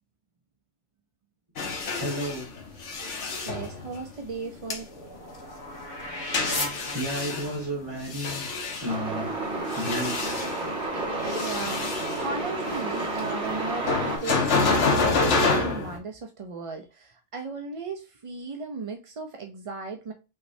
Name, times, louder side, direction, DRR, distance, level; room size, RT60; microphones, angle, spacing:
sound 1, 1.6-4.2 4.7-4.8 6.3-9.0 9.5-10.8 11.3-12.2 13.9-16.0, left 3 dB, 75° left, 1.3 m, -27 dB
voice 1, 2.0-2.5 6.9-8.5 8.8-9.3 9.7-10.1, equal, 20° right, 1.5 m, -31 dB
voice 2, 3.5-4.9 11.4-11.8 12.2-20.1, right 4 dB, 45° right, 0.4 m, -36 dB
sound 2, 4.3-7.7, left 2 dB, 50° left, 1.7 m, -35 dB
Truck, 8.9-14.2, right 2 dB, 70° right, 1.9 m, -31 dB
5.6 x 3.1 x 2.6 m
omnidirectional pair, 1.2 m